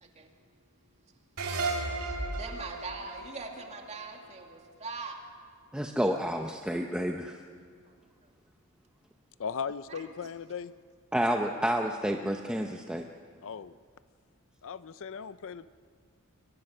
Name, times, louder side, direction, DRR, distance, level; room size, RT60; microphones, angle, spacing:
sound 1, 1.4-4.7, right 3 dB, 75° right, 3.1 m, -35 dB
voice 1, 2.3-5.2 7.8-7.9 9.9-10.3, right 3 dB, 30° right, 2 dB, 2.4 m, -42 dB
voice 2, 5.7-7.4 11.1-13.0, equal, 5° right, 2 dB, 0.8 m, -29 dB
voice 3, 9.4-10.7 13.4-13.7 14.6-15.7, left 6 dB, 65° left, 15 dB, 0.5 m, -37 dB
22.5 x 21.0 x 6.7 m, 2.1 s
head